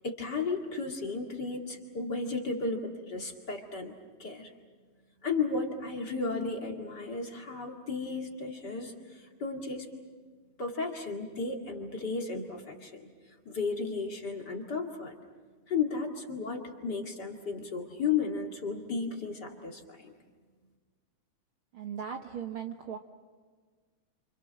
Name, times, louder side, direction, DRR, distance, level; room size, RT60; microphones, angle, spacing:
voice 1, 0.0-3.9 4.2-4.5 5.2-9.9 10.6-13.1 13.5-15.1 15.7-20.2, left 4 dB, 35° left, 2 dB, 2.4 m, -34 dB
voice 2, 21.7-23.0, right 8 dB, 60° right, 4 dB, 1.5 m, -38 dB
29.0 x 28.0 x 6.3 m, 1.5 s
omnidirectional pair, 3.4 m